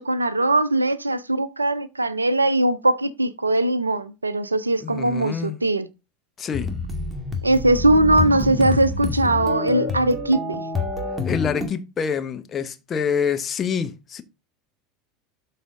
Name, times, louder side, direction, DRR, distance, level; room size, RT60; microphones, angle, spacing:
voice 1, 0.0-5.9 7.4-10.6, right 1 dB, 85° right, 0.5 m, -20 dB
voice 2, 4.8-5.6 6.4-6.7 11.2-14.2, left 6 dB, 30° left, 1.0 m, -26 dB
sound 1, 6.5-11.7, left 3 dB, 5° right, 2.2 m, -27 dB
12.0 x 4.1 x 3.8 m
figure-of-eight pair, 75°, 0 cm